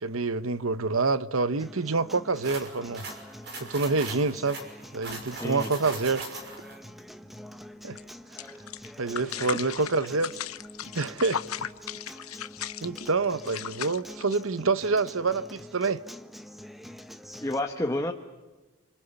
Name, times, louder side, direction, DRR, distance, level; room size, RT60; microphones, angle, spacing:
voice 1, 0.0-3.1 3.6-4.6 4.9-6.3 7.8-8.0 9.0-10.3 10.9-11.7 12.8-16.0, right 3 dB, 65° right, 1.0 m, -27 dB
Acoustic guitar, 1.6-17.6, equal, ahead, 1.1 m, -46 dB
sound 1, 2.4-6.8, right 2 dB, 50° right, 5.9 m, -40 dB
voice 2, 5.3-5.7 9.4-9.6 17.4-18.1, left 1 dB, 15° left, 1.4 m, -30 dB
sound 2, 7.9-8.0 8.4-14.8, left 9 dB, 80° left, 1.1 m, -37 dB
28.5 x 27.0 x 7.1 m
head